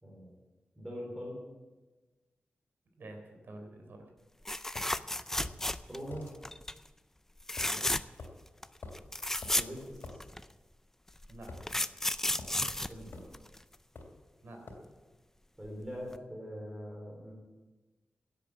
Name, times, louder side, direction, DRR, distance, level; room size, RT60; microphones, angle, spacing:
voice 1, 0.8-1.4 5.9-6.4 9.5-10.2 12.9-13.3 15.6-17.3, equal, 10° right, -3 dB, 3.6 m, -42 dB
voice 2, 3.0-4.1 7.6-8.1 11.3-11.7 14.4-14.6, right 1 dB, 65° right, 3 dB, 3.7 m, -49 dB
sound 1, 4.4-6.1 6.4-6.8 7.4-8.3 8.6-8.7 8.9-10.4 11.2-13.7 15.7-15.8 16.1-16.2, left 1 dB, 10° left, 0.4 m, -33 dB
sound 2, 4.7-4.9 5.4-5.6 6.1-6.3 7.6-7.8 8.2-8.3 8.8-9.1 9.4-9.6 10.0-10.2 11.5-12.0 12.4-12.6 13.1-13.4 13.9-14.2 14.7-14.9, left 3 dB, 75° left, 2.8 m, -46 dB
16.0 x 8.3 x 8.5 m, 1.2 s
wide cardioid pair, 145°, 4 cm